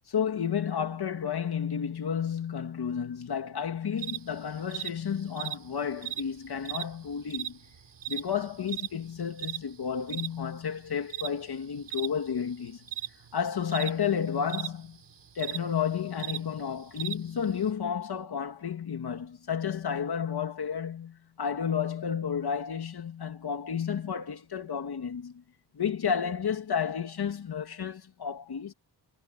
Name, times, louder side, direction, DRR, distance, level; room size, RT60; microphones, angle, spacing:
voice 1, 0.1-7.6 8.1-12.8 13.3-15.0 15.3-25.4 25.7-28.7, left 7 dB, 65° left, 2.2 m, -31 dB
sound 1, 4.0-17.7, right 12 dB, 75° right, 4.5 m, -38 dB
wide cardioid pair, 125°, 42 cm